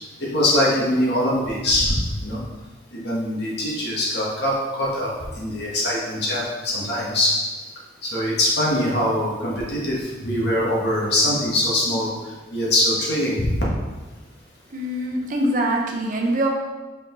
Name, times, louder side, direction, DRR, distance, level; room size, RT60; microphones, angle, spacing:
voice 1, 0.2-2.4 2.9-7.3 8.0-12.1 12.5-13.6, left 1 dB, 55° left, -4 dB, 1.7 m, -22 dB
voice 2, 14.7-16.5, right 1 dB, 45° right, 0 dB, 0.8 m, -23 dB
5.3 x 5.0 x 4.0 m, 1.2 s
head